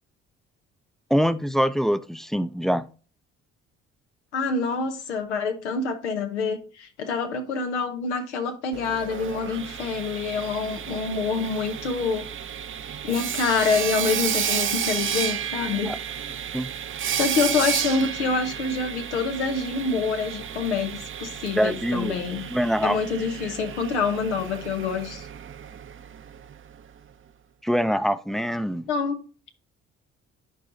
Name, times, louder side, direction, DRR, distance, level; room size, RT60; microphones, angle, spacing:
voice 1, 1.1-2.9 15.9-16.0 16.5-16.7 21.6-22.2 22.5-23.0 27.6-28.9, equal, ahead, 0.5 m, -24 dB
voice 2, 4.3-12.3 13.0-15.9 17.1-22.5 22.8-25.3 28.9-29.2, left 4 dB, 90° left, 0.8 m, -26 dB
Sawing, 8.7-26.5, right 8 dB, 35° right, 0.6 m, -32 dB
12.0 x 4.8 x 2.6 m
hypercardioid pair, 45°, 34 cm